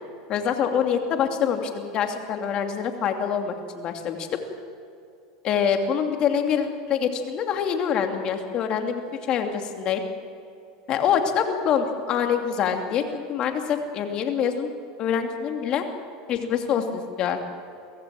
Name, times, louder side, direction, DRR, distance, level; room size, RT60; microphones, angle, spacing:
voice 1, 0.3-4.3 5.4-9.0 9.3-10.0 10.9-14.7 15.0-15.8 16.3-17.4, left 7 dB, 45° left, 5 dB, 2.8 m, -25 dB
23.5 x 16.0 x 7.8 m, 2.6 s
supercardioid pair, 115°, 2 cm